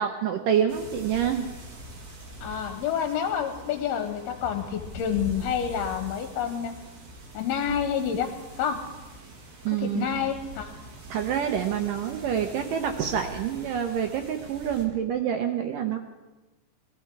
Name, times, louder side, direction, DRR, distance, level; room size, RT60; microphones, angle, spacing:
voice 1, 0.0-1.5 9.7-10.1 11.1-16.0, right 9 dB, 75° right, 5 dB, 2.1 m, -27 dB
sound 1, 0.7-14.9, right 1 dB, 45° right, 3.3 m, -43 dB
voice 2, 2.4-6.7 7.3-8.3 8.6-8.8 9.8-10.7, left 8 dB, 75° left, 7 dB, 2.8 m, -28 dB
sound 2, 4.3-7.4, left 6 dB, 45° left, 5.0 m, -47 dB
21.5 x 13.5 x 4.6 m, 1.1 s
omnidirectional pair, 4.6 m